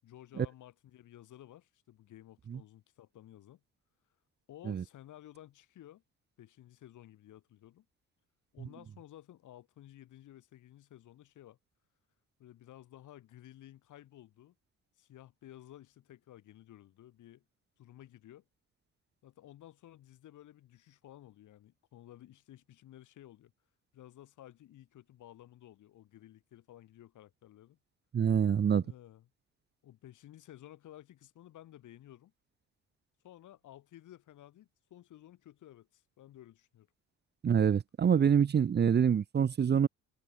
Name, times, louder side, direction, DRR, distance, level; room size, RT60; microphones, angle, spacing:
voice 1, 0.0-3.6 4.5-6.0 6.4-7.9 8.5-11.6 12.4-14.5 15.0-17.4 17.8-18.4 19.2-23.5 23.9-27.8 28.8-29.3 29.8-32.3 33.2-36.9, left 13 dB, 80° left, 7.8 m, -54 dB
voice 2, 28.1-28.8 37.4-39.9, right 7 dB, 35° right, 0.7 m, -26 dB
cardioid pair, 90°, 30 cm